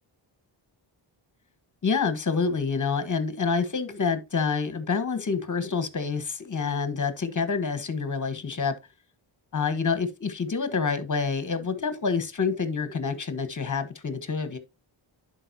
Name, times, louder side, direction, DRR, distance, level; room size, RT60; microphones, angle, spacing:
voice 1, 1.8-8.7 9.5-14.6, left 5 dB, 40° left, 1.2 m, -27 dB
11.0 x 4.5 x 2.7 m
cardioid pair, 70°, 48 cm